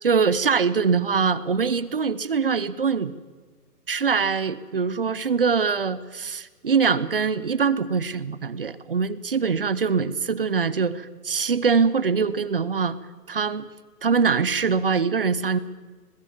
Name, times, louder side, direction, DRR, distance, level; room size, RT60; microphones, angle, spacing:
voice 1, 0.0-3.2 3.9-13.0 13.3-13.7 14.0-15.6, right 5 dB, 35° right, 17 dB, 0.7 m, -23 dB
22.5 x 21.0 x 7.2 m, 1.4 s
hypercardioid pair, 170°, 47 cm